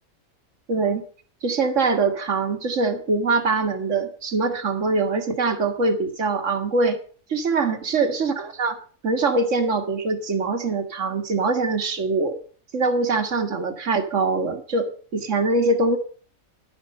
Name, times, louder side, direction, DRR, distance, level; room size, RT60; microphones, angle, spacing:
voice 1, 0.7-1.0 1.4-7.0 7.3-8.8 9.0-12.4 12.7-16.0, right 3 dB, 60° right, 7 dB, 2.0 m, -23 dB
11.5 x 9.3 x 6.6 m, 0.43 s
omnidirectional pair, 1.5 m